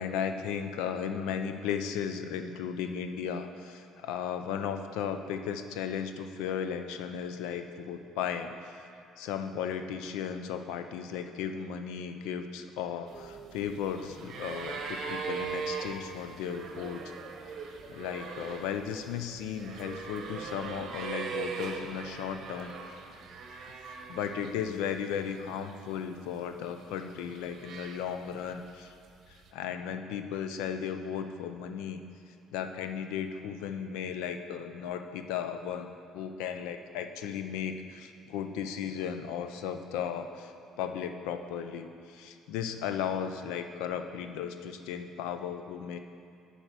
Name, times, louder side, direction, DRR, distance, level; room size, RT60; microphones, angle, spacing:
voice 1, 0.0-8.9 9.2-17.0 17.9-22.7 24.1-28.9 29.5-32.0 32.5-40.5 40.8-46.0, left 8 dB, 90° left, 8 dB, 0.5 m, -35 dB
sound 1, 13.1-24.8 25.1-26.0 26.7-28.4 29.4-29.5, right 5 dB, 60° right, 0.8 m, -40 dB
9.1 x 4.4 x 6.7 m, 2.5 s
cardioid pair, 110°, 0 cm